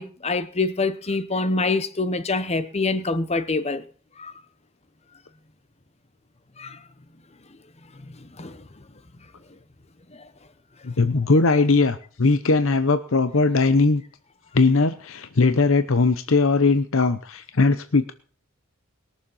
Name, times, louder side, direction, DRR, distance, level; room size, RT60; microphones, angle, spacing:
voice 1, 0.0-3.8 4.2-4.4 6.6-6.8 8.0-8.6 10.1-10.2, left 3 dB, 30° left, 1.0 m, -26 dB
voice 2, 10.8-14.0 14.5-18.1, left 3 dB, 65° left, 0.8 m, -19 dB
21.0 x 7.3 x 5.6 m
head